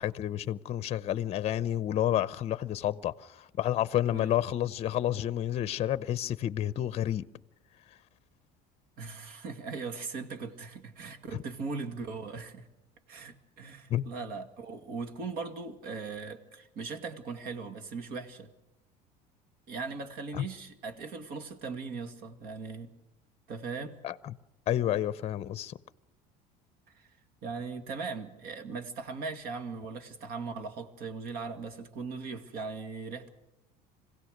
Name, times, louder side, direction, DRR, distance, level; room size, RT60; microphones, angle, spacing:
voice 1, 0.0-7.3 13.9-14.1 20.3-20.4 24.0-24.3 24.7-25.8, left 12 dB, 35° left, 0.7 m, -30 dB
voice 2, 9.0-12.7 13.1-18.5 19.7-22.9 23.5-24.0 26.9-27.1 27.4-33.3, right 4 dB, 60° right, 2.3 m, -39 dB
26.0 x 16.5 x 6.6 m
cardioid pair, 140°, 17 cm